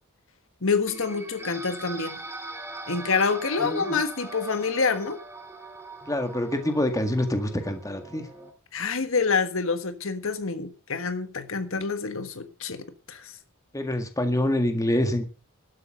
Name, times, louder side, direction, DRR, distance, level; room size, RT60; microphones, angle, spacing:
voice 1, 0.6-2.2 2.9-5.2 8.7-13.3, left 4 dB, 70° left, 1.5 m, -27 dB
sound 1, 0.9-8.5, right 2 dB, 10° right, 1.9 m, -41 dB
voice 2, 3.6-4.0 6.1-8.3 13.7-15.2, left 1 dB, 15° left, 1.9 m, -26 dB
12.5 x 8.1 x 6.5 m
head